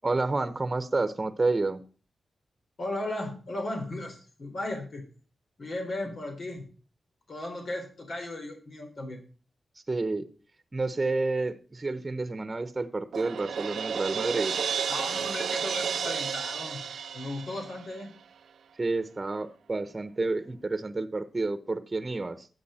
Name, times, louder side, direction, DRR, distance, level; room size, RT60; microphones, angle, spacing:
voice 1, 0.0-1.8 9.9-10.3 10.7-14.6 18.8-22.5, right 3 dB, 30° right, 11 dB, 1.1 m, -29 dB
voice 2, 2.8-5.0 5.6-6.7 7.3-9.2 14.9-16.8 17.1-18.1, left 1 dB, 65° left, 2 dB, 3.8 m, -36 dB
Crash cymbal, 13.1-18.1, right 7 dB, 75° right, 0.6 m, -32 dB
13.5 x 8.2 x 4.4 m, 0.39 s
cardioid pair, 55°, 0 cm